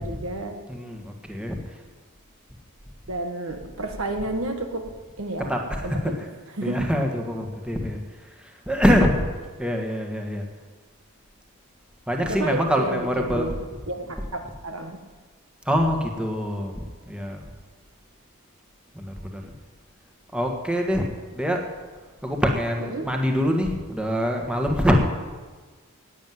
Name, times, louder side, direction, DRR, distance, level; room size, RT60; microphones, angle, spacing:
voice 1, 0.0-0.6 3.1-4.9 5.2-5.5 5.8-6.2 6.6-6.9 12.3-15.0 22.9-23.1 25.0-25.1, right 2 dB, 70° right, 5 dB, 1.5 m, -31 dB
voice 2, 0.7-1.6 5.5-5.9 6.6-8.0 8.4-9.3 9.6-10.5 12.1-13.5 15.7-16.7 17.1-17.4 18.9-19.5 20.3-21.1 21.3-21.7 22.2-25.0, equal, 5° right, 2 dB, 1.4 m, -24 dB
11.5 x 9.2 x 9.3 m, 1.4 s
head